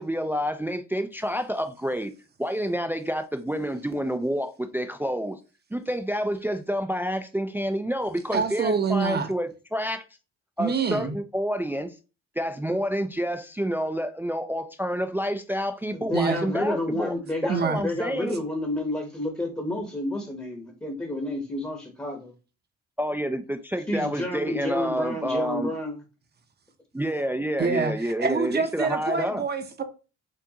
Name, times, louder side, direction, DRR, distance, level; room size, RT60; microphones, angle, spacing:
voice 1, 0.0-2.1 2.4-5.4 5.7-10.0 10.6-11.9 12.4-17.1 17.6-18.4 23.0-25.7 26.9-29.4, equal, 5° right, 0.3 m, -28 dB
voice 2, 8.3-9.3 10.6-11.1 16.1-16.5 17.5-17.8 27.6-29.8, right 5 dB, 35° right, 0.7 m, -26 dB
voice 3, 15.9-22.3 23.9-26.0, left 1 dB, 10° left, 0.9 m, -30 dB
4.6 x 2.5 x 2.8 m
cardioid pair, 90°, 30 cm